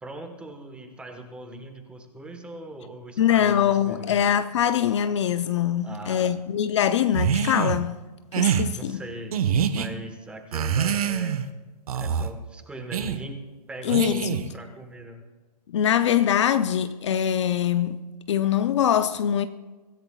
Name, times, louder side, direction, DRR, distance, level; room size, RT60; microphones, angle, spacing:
voice 1, 0.0-4.2 5.8-6.3 8.7-11.4 11.9-13.4 13.7-15.2, right 1 dB, 5° right, 1.3 m, -40 dB
voice 2, 3.2-8.0 8.3-9.0 13.8-14.3 15.7-19.5, left 9 dB, 45° left, 0.6 m, -23 dB
sound 1, 7.1-7.8 8.3-8.7 9.3-9.9 10.5-11.5 11.9-12.3 12.9-13.2 13.9-14.5, right 7 dB, 60° right, 1.3 m, -25 dB
24.5 x 15.0 x 2.4 m
hypercardioid pair, 160°, 21 cm